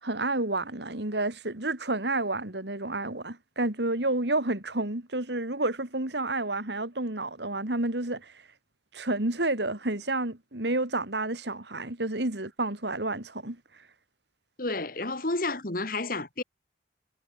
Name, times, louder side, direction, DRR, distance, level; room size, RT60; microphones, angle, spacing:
voice 1, 0.0-8.3 8.9-13.6, right 2 dB, 65° right, 2.8 m, -30 dB
voice 2, 14.6-16.4, left 2 dB, 50° left, 2.2 m, -30 dB
head